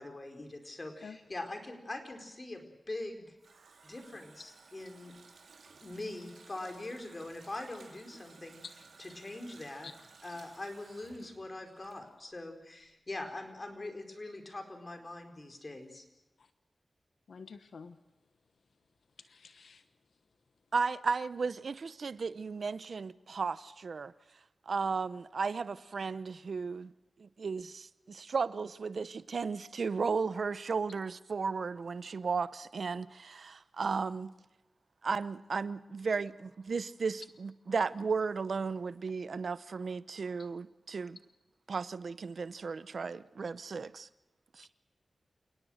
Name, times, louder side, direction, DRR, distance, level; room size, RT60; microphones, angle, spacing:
voice 1, 0.0-3.4 3.8-5.1 5.8-8.6 9.0-9.9 10.2-16.0, left 2 dB, 35° left, 4.5 m, -43 dB
Water tap faucet, 2.9-12.5 12.8-12.9, right 4 dB, 85° right, 3.2 m, -58 dB
voice 2, 17.3-18.0 19.2-19.8, left 5 dB, 85° left, 1.1 m, -48 dB
voice 3, 20.7-24.1 24.7-26.9 27.2-34.3 35.0-41.2 41.7-44.1 44.5-44.7, right 5 dB, 70° right, 0.7 m, -35 dB
29.0 x 18.0 x 6.5 m
cardioid pair, 65°, 0 cm